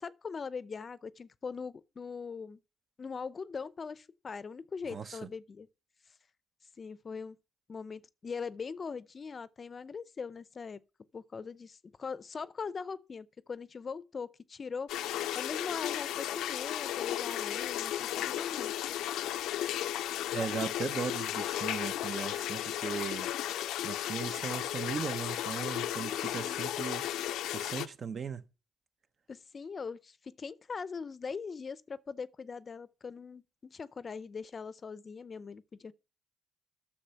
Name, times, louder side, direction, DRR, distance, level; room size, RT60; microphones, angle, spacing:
voice 1, 0.0-2.6 3.0-5.7 6.8-7.4 7.7-10.8 11.1-14.9 15.3-18.7 25.9-26.6 29.3-35.9, left 5 dB, 40° left, 0.5 m, -41 dB
sound 1, 14.9-27.9, left 12 dB, 90° left, 0.5 m, -34 dB
voice 2, 20.3-23.3 23.8-27.0 27.5-28.4, right 6 dB, 50° right, 0.8 m, -37 dB
10.0 x 6.7 x 5.7 m
cardioid pair, 90°, 0 cm